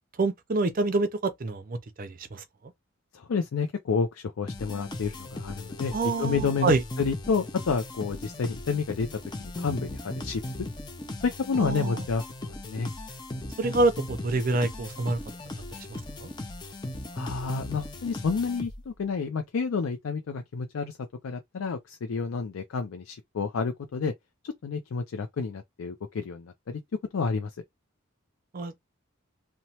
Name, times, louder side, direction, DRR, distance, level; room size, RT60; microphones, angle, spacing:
voice 1, 0.2-2.4 5.9-6.8 11.6-12.1 13.6-15.2 15.8-16.3 28.5-28.9, right 3 dB, 40° right, 0.5 m, -27 dB
voice 2, 3.1-10.4 11.2-12.2 12.6-12.9 17.1-21.0 21.2-24.1 24.4-26.8 27.1-27.5, left 5 dB, 80° left, 0.4 m, -30 dB
sound 1, 4.5-19.0, left 2 dB, 20° left, 0.4 m, -38 dB
3.0 x 2.1 x 2.8 m
head